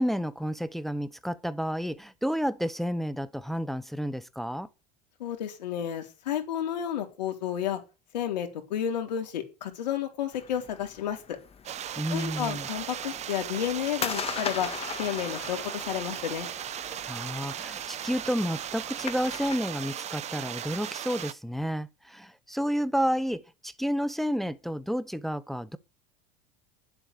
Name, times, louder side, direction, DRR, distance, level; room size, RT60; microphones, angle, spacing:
voice 1, 0.0-4.7 12.0-12.7 17.1-25.8, equal, ahead, 0.8 m, -30 dB
voice 2, 5.2-7.8 8.1-11.4 12.1-14.7 15.0-16.5, left 10 dB, 90° left, 3.8 m, -31 dB
sound 1, 10.3-19.6, left 7 dB, 30° left, 1.8 m, -40 dB
sound 2, 11.6-21.3, right 10 dB, 35° right, 0.8 m, -37 dB
10.0 x 7.9 x 8.3 m
supercardioid pair, 105°, 21 cm